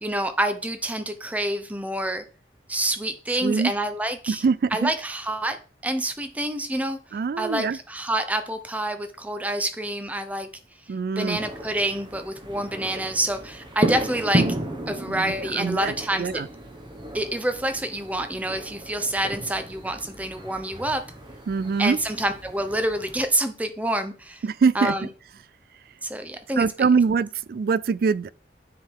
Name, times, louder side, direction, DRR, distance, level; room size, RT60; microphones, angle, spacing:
voice 1, 0.0-2.3 2.7-4.4 4.7-5.6 5.8-7.0 7.4-10.5 10.9-14.4 14.9-16.4 17.1-21.0 21.8-24.4 24.7-25.1 26.0-26.7, right 1 dB, 10° right, 0.8 m, -27 dB
voice 2, 3.4-3.7 4.3-4.9 7.1-7.8 10.9-11.4 15.1-16.5 21.5-22.0 24.4-25.0 26.6-28.3, right 5 dB, 55° right, 0.3 m, -23 dB
sound 1, 11.3-23.3, right 1 dB, 25° right, 1.2 m, -33 dB
9.4 x 3.8 x 4.6 m
head